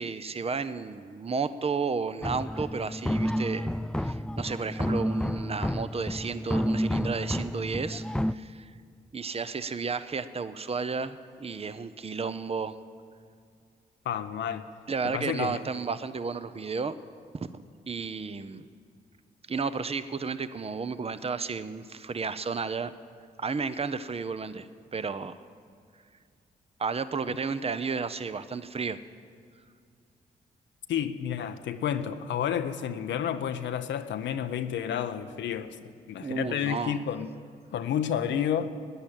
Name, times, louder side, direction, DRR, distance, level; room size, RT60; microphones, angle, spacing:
voice 1, 0.0-3.7 4.0-8.7 9.1-12.8 14.9-17.0 17.3-17.5 17.9-18.7 19.5-22.9 23.4-25.3 26.8-29.0 36.2-37.0, right 5 dB, 30° right, 13 dB, 0.7 m, -32 dB
sound 1, 2.2-8.3, equal, 5° left, 0.3 m, -30 dB
voice 2, 14.1-14.7 15.0-15.6 30.9-37.3 37.7-38.7, left 9 dB, 75° left, 9 dB, 0.7 m, -30 dB
13.5 x 9.9 x 8.9 m, 2.2 s
supercardioid pair, 45°, 19 cm